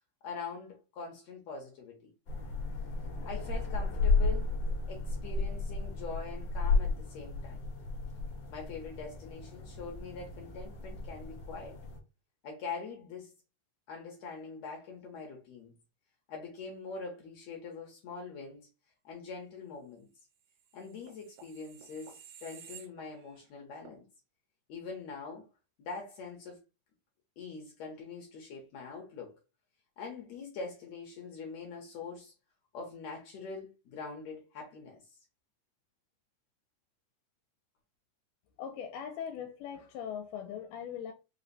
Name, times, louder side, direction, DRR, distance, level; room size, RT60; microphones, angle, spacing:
voice 1, 0.2-2.1 3.3-4.6 4.9-7.6 8.5-11.8 12.4-13.3 13.9-15.7 16.3-18.7 19.0-20.1 20.7-24.1 24.7-25.5 25.8-26.6 27.4-29.4 30.0-32.3 32.7-35.2, left 4 dB, 70° left, 1.9 m, -43 dB
sound 1, 2.3-12.0, left 3 dB, 50° left, 1.4 m, -33 dB
sound 2, 20.5-23.5 23.8-24.0, right 8 dB, 70° right, 2.1 m, -53 dB
voice 2, 38.6-41.1, left 8 dB, 85° left, 2.1 m, -40 dB
5.0 x 2.1 x 4.0 m
omnidirectional pair, 3.7 m